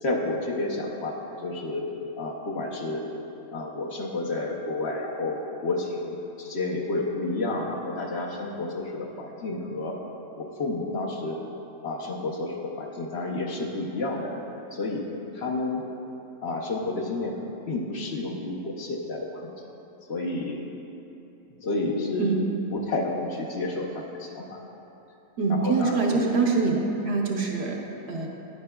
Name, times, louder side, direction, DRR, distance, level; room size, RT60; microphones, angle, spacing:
voice 1, 0.0-3.1 3.5-10.0 10.4-11.4 11.8-14.4 14.7-15.0 15.3-15.9 16.4-19.5 20.1-20.6 21.6-22.4 22.7-24.6 25.5-26.3, left 2 dB, 60° left, -1 dB, 1.0 m, -30 dB
voice 2, 25.4-28.3, right 4 dB, 60° right, 0 dB, 1.0 m, -25 dB
9.6 x 9.3 x 2.3 m, 3.0 s
omnidirectional pair, 1.3 m